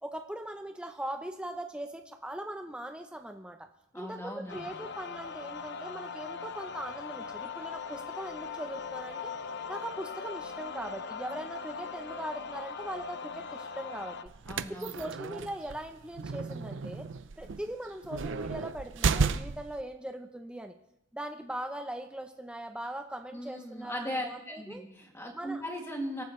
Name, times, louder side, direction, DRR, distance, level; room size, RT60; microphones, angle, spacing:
voice 1, 0.0-3.7 3.9-9.3 9.7-14.2 14.7-17.1 17.4-20.8 21.1-24.8 25.3-25.6, right 1 dB, 5° right, 5 dB, 0.7 m, -40 dB
voice 2, 3.9-4.8 14.5-15.3 23.3-26.2, equal, 15° left, 0 dB, 2.5 m, -38 dB
sound 1, 4.5-14.2, left 5 dB, 55° left, 0.7 m, -40 dB
sound 2, 14.3-19.8, right 5 dB, 65° right, 0.6 m, -33 dB
24.5 x 14.0 x 3.2 m, 0.82 s
head